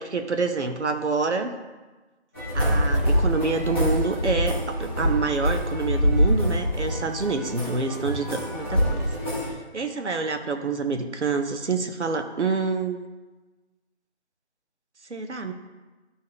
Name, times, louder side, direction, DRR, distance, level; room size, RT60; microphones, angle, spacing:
voice 1, 0.0-1.5 2.5-9.0 9.4-13.0 15.1-15.5, right 4 dB, 90° right, 6 dB, 1.1 m, -27 dB
sound 1, 2.3-9.5, equal, 10° right, 1.5 m, -25 dB
12.0 x 4.2 x 3.9 m, 1.2 s
figure-of-eight pair, 175°, 34 cm